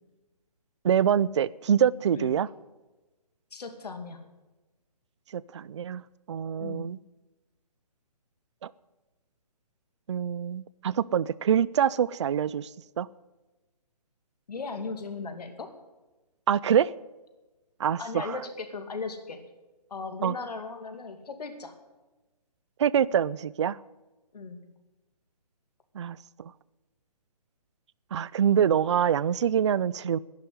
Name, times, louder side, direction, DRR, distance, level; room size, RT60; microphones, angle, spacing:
voice 1, 0.8-2.5 5.3-6.0 6.3-7.0 8.6-8.7 10.1-12.7 13.0-13.1 16.5-16.9 17.8-18.4 20.2-20.3 22.8-23.8 26.0-26.5 28.1-30.2, right 8 dB, 45° right, 21 dB, 0.4 m, -25 dB
voice 2, 3.5-4.2 6.6-6.9 14.5-15.7 18.0-19.4 19.9-21.8 24.3-24.6, left 4 dB, 70° left, 7 dB, 2.4 m, -37 dB
10.5 x 10.0 x 9.8 m, 1.1 s
hypercardioid pair, 160°, 21 cm